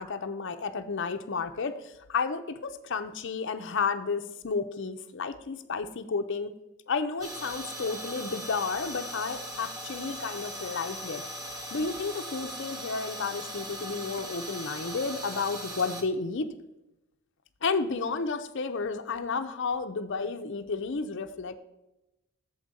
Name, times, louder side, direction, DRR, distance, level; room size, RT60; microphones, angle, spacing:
voice 1, 0.0-6.5 6.9-11.3 11.7-16.5 17.6-21.6, left 4 dB, 55° left, 8 dB, 0.6 m, -32 dB
sound 1, 7.2-16.0, equal, 15° right, 0.9 m, -39 dB
7.0 x 5.0 x 6.7 m, 0.93 s
head